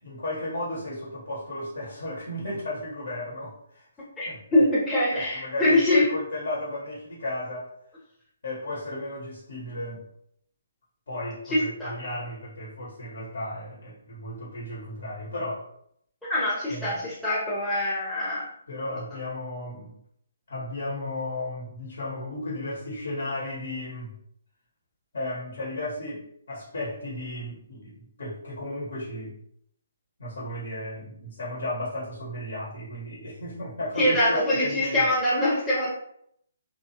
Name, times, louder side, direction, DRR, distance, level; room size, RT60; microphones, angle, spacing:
voice 1, 0.0-3.8 4.3-4.4 5.1-7.7 8.4-10.0 11.1-15.7 16.7-17.1 18.7-19.9 20.5-24.2 25.1-26.2 26.5-29.4 30.2-35.1, left 1 dB, 60° left, -6 dB, 1.1 m, -34 dB
voice 2, 4.2-6.2 11.5-11.9 16.3-18.5 34.0-35.9, left 1 dB, 5° left, -11 dB, 0.8 m, -24 dB
2.9 x 2.3 x 2.8 m, 0.70 s
figure-of-eight pair, 135°, 0 cm